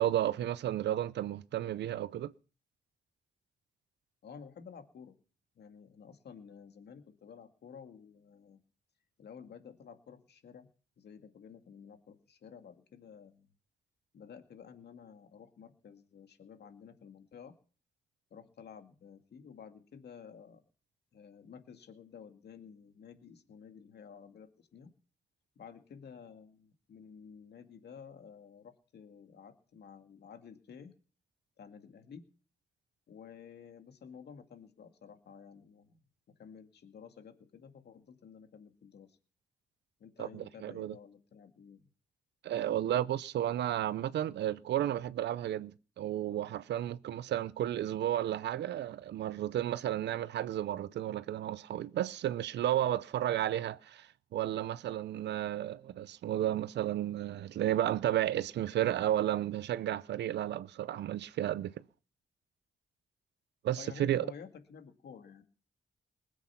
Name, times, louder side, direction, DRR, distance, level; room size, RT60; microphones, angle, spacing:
voice 1, 0.0-2.3 40.2-40.9 42.4-45.7 46.0-61.8 63.6-64.3, right 12 dB, 90° right, 0.6 m, -32 dB
voice 2, 4.2-5.1 5.6-8.6 9.2-10.7 11.0-13.5 14.1-17.5 18.3-20.6 21.1-24.9 25.6-30.9 31.6-32.3 33.1-36.0 36.4-39.2 40.0-41.8 42.5-42.7 63.8-65.4, left 6 dB, 70° left, 2.2 m, -52 dB
20.5 x 8.1 x 5.9 m
cardioid pair, 90°, 18 cm